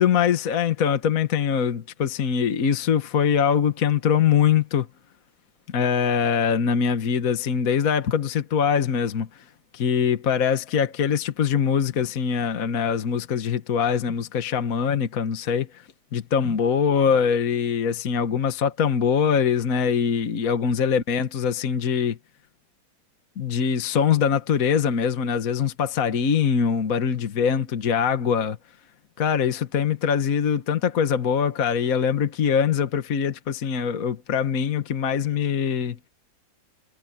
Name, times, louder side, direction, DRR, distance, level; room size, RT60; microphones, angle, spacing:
voice 1, 0.0-4.9 5.7-9.4 9.7-22.2 23.4-28.6 29.2-36.0, left 7 dB, 50° left, 1.6 m, -23 dB
omnidirectional pair, 2.1 m